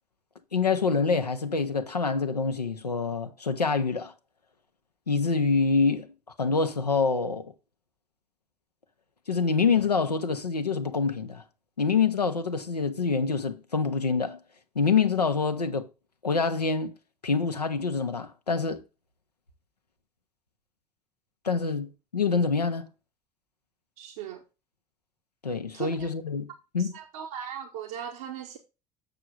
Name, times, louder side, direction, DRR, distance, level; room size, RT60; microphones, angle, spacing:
voice 1, 0.5-4.1 5.1-6.1 6.4-7.5 9.3-11.4 11.8-14.4 14.7-15.9 16.2-16.9 17.2-18.8 21.4-22.9 25.4-26.9, left 5 dB, 85° left, 0.9 m, -26 dB
voice 2, 24.0-24.4 25.7-26.1 26.8-28.6, right 9 dB, 65° right, 1.1 m, -38 dB
8.0 x 6.6 x 3.8 m
figure-of-eight pair, 60°, 20 cm